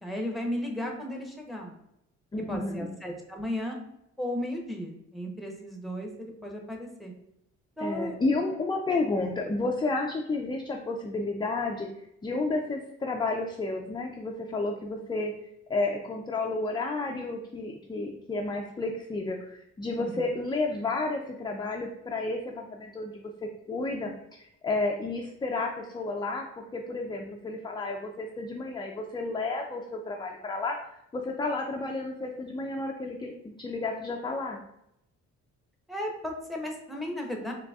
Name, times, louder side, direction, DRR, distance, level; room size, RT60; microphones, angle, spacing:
voice 1, 0.0-1.7 2.5-3.8 4.2-7.1 7.8-8.1 20.0-20.1 35.9-37.5, left 1 dB, ahead, 1 dB, 0.7 m, -35 dB
voice 2, 2.3-2.9 7.8-11.9 12.2-15.3 15.7-23.1 23.4-24.1 24.4-30.8 31.1-34.6, left 3 dB, 15° left, 1 dB, 0.3 m, -31 dB
3.9 x 3.2 x 2.3 m, 0.80 s
cardioid pair, 90°, 30 cm